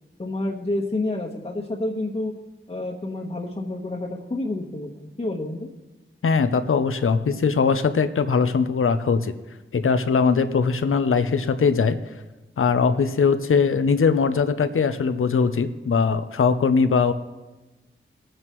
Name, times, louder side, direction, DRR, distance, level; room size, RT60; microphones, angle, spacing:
voice 1, 0.2-2.3 2.7-5.7, left 2 dB, 30° left, -2 dB, 1.2 m, -29 dB
voice 2, 6.2-9.3 9.7-12.0 12.6-17.1, left 5 dB, 85° left, 11 dB, 0.7 m, -21 dB
20.5 x 9.2 x 3.1 m, 1.1 s
wide cardioid pair, 60°, 21 cm